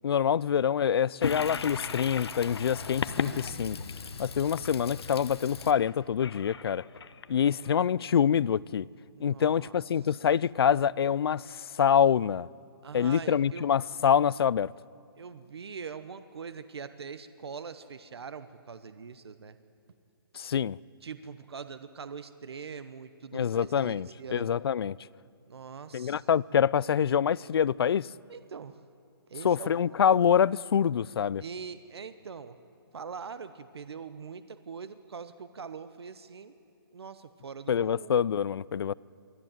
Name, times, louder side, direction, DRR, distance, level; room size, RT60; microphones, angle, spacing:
voice 1, 0.0-3.8 4.2-6.8 7.3-8.9 9.2-12.5 12.9-14.7 20.3-20.8 23.3-25.0 25.9-28.1 29.4-31.4 37.7-38.9, left 8 dB, 70° left, 0.4 m, -26 dB
Toilet flush, 1.2-7.7, left 5 dB, 90° left, 1.1 m, -36 dB
voice 2, 9.1-9.8 12.8-13.7 15.2-19.6 21.0-24.5 25.5-26.2 28.3-28.8 29.3-30.0 31.4-32.6 32.9-36.5 36.9-38.1, right 6 dB, 85° right, 1.0 m, -43 dB
24.0 x 13.5 x 9.0 m
hypercardioid pair, 170°, 13 cm